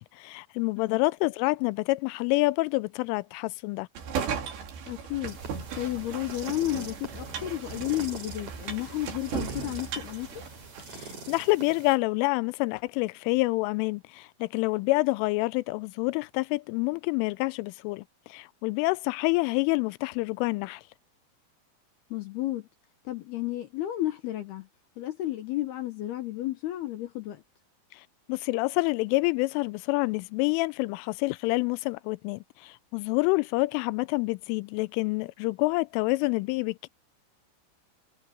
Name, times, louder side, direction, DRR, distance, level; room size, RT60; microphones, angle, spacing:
voice 1, 0.0-3.9 10.9-18.0 18.3-20.8 27.9-28.0 28.3-36.9, left 23 dB, 85° left, 3.0 m, -27 dB
sound 1, 4.0-11.2, right 7 dB, 60° right, 5.5 m, -37 dB
voice 2, 4.9-5.4 5.7-10.4 22.1-22.7 23.1-24.7 25.0-27.4, left 15 dB, 70° left, 2.6 m, -32 dB
sound 2, 5.2-12.0, right 4 dB, 35° right, 7.1 m, -44 dB
omnidirectional pair, 5.7 m